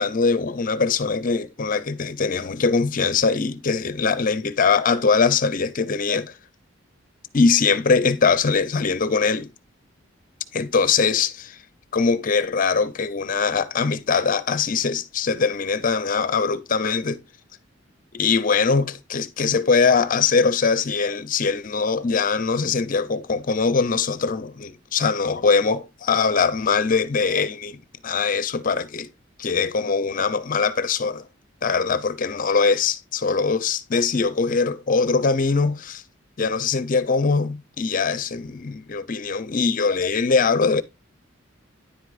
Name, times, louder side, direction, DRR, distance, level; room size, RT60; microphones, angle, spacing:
voice 1, 0.0-6.3 7.3-9.5 10.5-11.6 11.9-17.2 18.1-29.1 29.4-31.2 31.6-36.0 36.4-40.8, left 5 dB, 40° left, 0.5 m, -22 dB
10.0 x 8.0 x 2.4 m
head